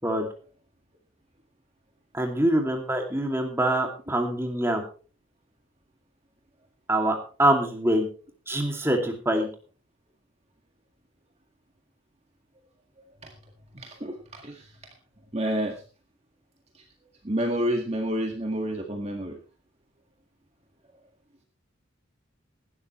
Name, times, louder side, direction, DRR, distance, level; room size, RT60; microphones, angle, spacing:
voice 1, 2.1-4.8 6.9-8.1 8.5-9.5, right 1 dB, 10° right, 2 dB, 2.5 m, -24 dB
voice 2, 13.7-14.7 15.3-15.8 17.2-19.4, equal, 30° right, 2 dB, 1.8 m, -29 dB
17.5 x 12.5 x 3.2 m, 0.38 s
head